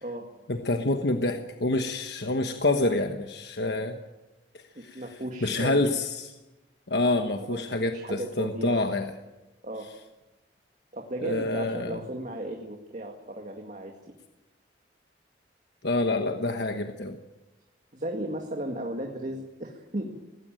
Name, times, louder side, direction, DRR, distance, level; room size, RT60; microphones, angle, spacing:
voice 1, 0.5-4.0 4.5-5.0 5.4-6.3 6.9-9.1 11.2-12.0 15.8-17.2, left 2 dB, 65° left, 6 dB, 1.2 m, -27 dB
voice 2, 4.8-5.9 7.4-8.9 9.6-9.9 10.9-13.9 17.9-20.2, right 1 dB, 45° right, 3 dB, 2.0 m, -35 dB
19.0 x 17.0 x 9.1 m, 1.1 s
head